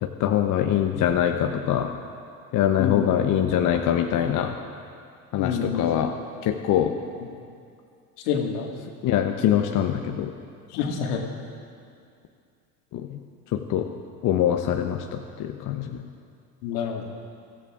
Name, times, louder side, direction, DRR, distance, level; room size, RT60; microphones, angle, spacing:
voice 1, 0.0-1.9 2.5-4.6 5.3-6.1 6.4-6.9 9.0-10.3 12.9-13.2 13.5-13.9 14.2-16.0, left 10 dB, 40° left, 4 dB, 0.9 m, -23 dB
voice 2, 5.4-5.9 8.3-8.7 10.7-11.3 16.6-17.0, left 7 dB, 70° left, 1 dB, 2.0 m, -27 dB
22.5 x 14.5 x 2.5 m, 2.3 s
hypercardioid pair, 75°, 47 cm